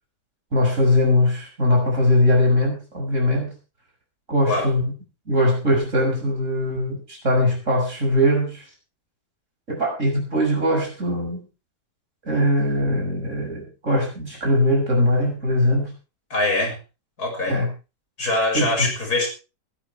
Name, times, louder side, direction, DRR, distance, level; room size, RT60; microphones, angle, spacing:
voice 1, 0.5-3.5 4.3-4.9 5.3-8.6 9.7-11.4 12.3-15.9 17.5-17.7 18.5-18.9, left 1 dB, 45° right, 0 dB, 6.7 m, -21 dB
voice 2, 16.3-16.8 17.2-17.6 18.2-19.3, left 2 dB, 60° left, 1 dB, 6.4 m, -23 dB
21.0 x 12.0 x 3.4 m, 0.31 s
omnidirectional pair, 1.9 m